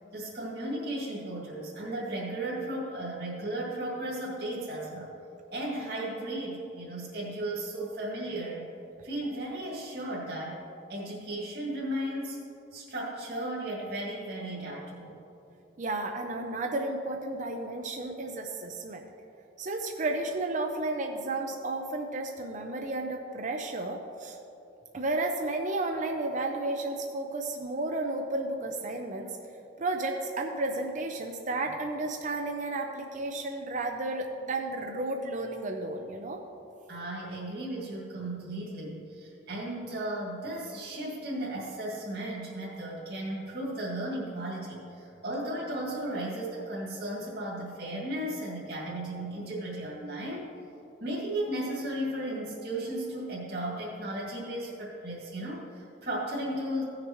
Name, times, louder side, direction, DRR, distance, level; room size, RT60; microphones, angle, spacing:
voice 1, 0.1-5.1 5.5-8.7 9.0-10.6 10.9-12.4 12.7-15.1 36.9-50.5 51.0-56.8, right 1 dB, 55° right, -6 dB, 2.3 m, -35 dB
voice 2, 15.8-19.0 19.6-24.4 24.9-29.3 29.8-36.4, right 2 dB, 40° right, 3 dB, 0.6 m, -32 dB
17.0 x 6.6 x 3.1 m, 2.8 s
head